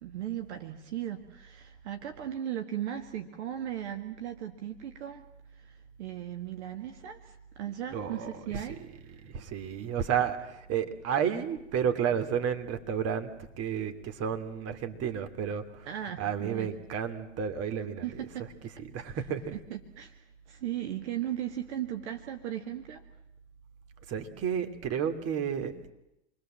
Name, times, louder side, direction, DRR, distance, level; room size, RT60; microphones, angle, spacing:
voice 1, 0.0-5.2 5.5-8.8 9.1-9.2 15.9-16.7 18.0-18.5 19.5-23.0, right 11 dB, 70° right, 6 dB, 1.9 m, -37 dB
voice 2, 7.9-8.3 9.2-13.3 13.6-15.9 16.2-18.0 18.9-19.6 24.1-25.9, right 8 dB, 45° right, 8 dB, 2.7 m, -31 dB
28.0 x 21.0 x 7.6 m, 0.86 s
hypercardioid pair, 95°, 35 cm